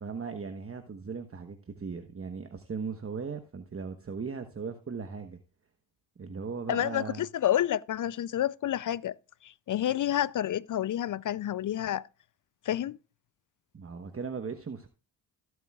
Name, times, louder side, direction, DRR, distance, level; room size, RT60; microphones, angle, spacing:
voice 1, 0.0-5.4 6.2-7.3 13.7-14.9, right 5 dB, 25° right, 1.1 m, -38 dB
voice 2, 6.7-9.2 9.4-12.1 12.7-13.0, left 11 dB, 40° left, 0.4 m, -29 dB
17.5 x 8.0 x 2.4 m
supercardioid pair, 55°, 49 cm